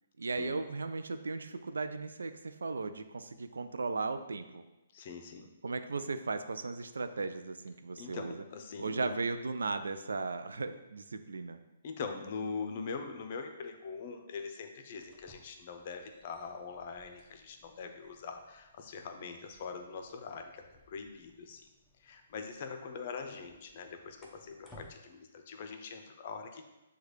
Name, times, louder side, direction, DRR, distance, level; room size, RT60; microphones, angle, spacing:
voice 1, 0.2-4.6 5.6-8.3 8.8-11.6, right 3 dB, 80° right, 9 dB, 0.3 m, -36 dB
voice 2, 4.9-5.5 8.0-9.2 11.8-21.6 22.0-26.6, left 5 dB, 45° left, 5 dB, 0.5 m, -43 dB
sound 1, 14.9-25.0, equal, 5° left, 0.7 m, -62 dB
6.3 x 2.3 x 3.1 m, 1.0 s
hypercardioid pair, 135°, 0 cm